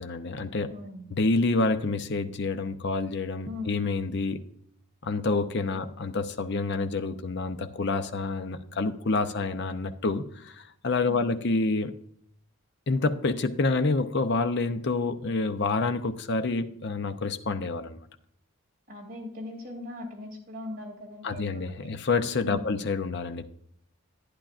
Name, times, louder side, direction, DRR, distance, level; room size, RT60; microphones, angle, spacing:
voice 1, 0.0-0.7 1.1-4.4 5.0-11.9 12.9-18.0 21.2-23.5, left 3 dB, 50° left, 10 dB, 0.6 m, -28 dB
voice 2, 0.7-1.0 3.5-3.8 5.7-5.9 18.9-21.9 22.5-22.8, left 2 dB, 40° right, -1 dB, 2.8 m, -40 dB
11.5 x 10.0 x 2.5 m, 0.69 s
head